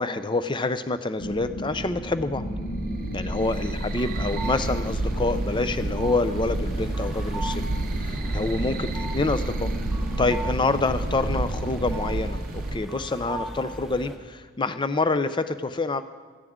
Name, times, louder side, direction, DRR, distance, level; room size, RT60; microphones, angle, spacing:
voice 1, 0.0-2.4 3.1-7.6 8.0-9.7 10.2-16.0, left 3 dB, 20° left, 11 dB, 0.5 m, -27 dB
sound 1, 1.2-12.1, equal, 50° left, 1.7 m, -35 dB
sound 2, 2.4-12.8, right 2 dB, 40° right, 0.6 m, -30 dB
sound 3, 3.4-14.2, right 1 dB, ahead, 1.3 m, -38 dB
17.0 x 14.0 x 3.7 m, 1.5 s
head